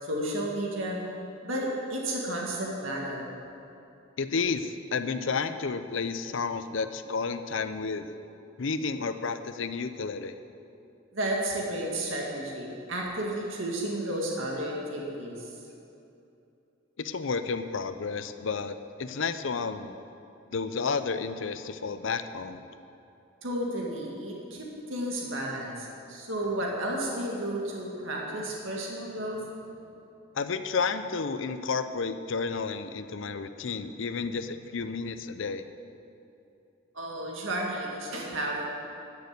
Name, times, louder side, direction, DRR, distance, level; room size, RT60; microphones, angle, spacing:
voice 1, 0.0-1.0 1.4-3.3 11.1-15.5 23.4-29.4 36.9-38.6, right 1 dB, 80° right, -2 dB, 1.8 m, -32 dB
voice 2, 4.2-8.2 8.6-10.3 17.0-20.0 20.5-22.6 30.3-35.6, left 5 dB, 75° left, 11 dB, 0.6 m, -31 dB
13.0 x 6.8 x 8.0 m, 2.7 s
head